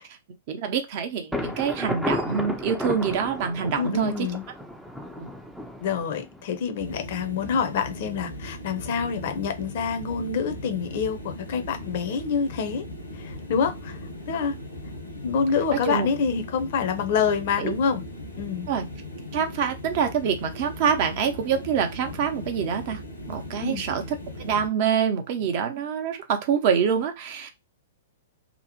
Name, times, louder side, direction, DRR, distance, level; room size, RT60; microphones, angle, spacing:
voice 1, 0.5-4.3 5.2-5.3 15.8-16.1 17.6-17.7 18.7-18.8 19.3-23.0 23.3-24.0 24.4-27.5, right 7 dB, 45° right, 0.7 m, -26 dB
Thunder, 1.3-7.0, left 1 dB, ahead, 0.5 m, -33 dB
voice 2, 3.8-4.4 5.8-12.8 13.1-14.0 14.3-14.6 15.2-18.0 18.4-18.7 23.6-23.8, left 6 dB, 50° left, 0.6 m, -27 dB
sound 1, 6.8-24.7, left 1 dB, 90° left, 1.2 m, -38 dB
2.9 x 2.0 x 2.8 m
figure-of-eight pair, 110°, 0 cm